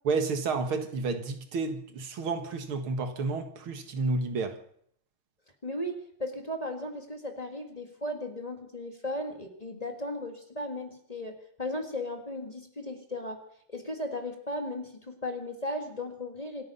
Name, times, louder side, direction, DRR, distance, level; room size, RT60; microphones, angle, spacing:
voice 1, 0.1-4.6, right 4 dB, 85° right, 2.5 m, -30 dB
voice 2, 5.6-13.4 13.7-16.6, left 1 dB, 20° left, 1.8 m, -36 dB
26.5 x 9.5 x 5.6 m
omnidirectional pair, 2.3 m